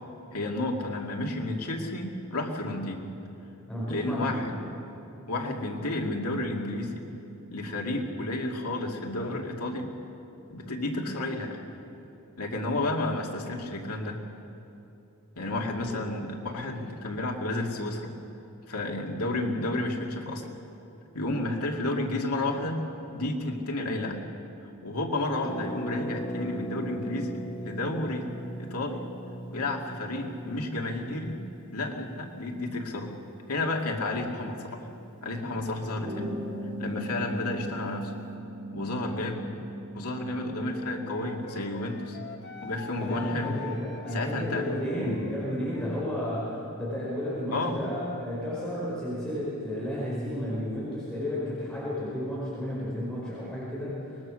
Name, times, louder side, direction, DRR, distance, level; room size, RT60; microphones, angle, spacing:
voice 1, 0.3-3.0 3.9-4.6 5.3-7.1 7.5-9.9 10.5-11.6 12.4-14.2 15.4-18.1 18.7-20.5 21.1-24.2 24.8-28.3 28.6-29.1 29.5-31.4 31.7-33.1 33.5-34.9 35.2-36.3 36.8-38.1 38.7-39.5 39.9-42.2 42.6-43.6 44.1-44.7 44.9-45.1 47.5-47.8, left 2 dB, 85° left, 1 dB, 2.5 m, -31 dB
voice 2, 3.7-4.5 43.0-54.2, equal, 5° left, -8 dB, 5.0 m, -32 dB
Harp, 25.4-35.0 35.3-35.4 35.6-35.9, right 1 dB, 20° left, 3.9 m, -40 dB
sound 1, 36.0-43.7, right 1 dB, 30° right, 6.7 m, -40 dB
Wind instrument woodwind instrument, 40.7-46.0, left 5 dB, 50° left, 1.3 m, -44 dB
24.0 x 20.5 x 6.4 m, 2.9 s
head